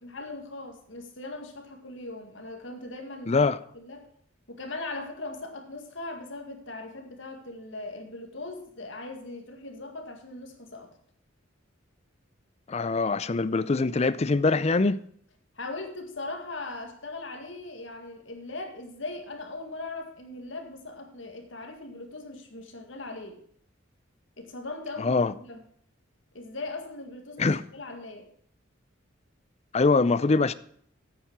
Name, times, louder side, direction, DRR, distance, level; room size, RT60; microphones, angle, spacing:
voice 1, 0.0-3.5 3.7-4.1 4.5-10.9 15.6-23.4 24.4-25.6 26.3-28.3, left 2 dB, 70° left, 2.1 m, -39 dB
voice 2, 3.3-3.6 12.7-15.0 25.0-25.3 27.4-27.6 29.7-30.5, left 3 dB, 35° left, 0.5 m, -23 dB
9.2 x 8.3 x 6.1 m
head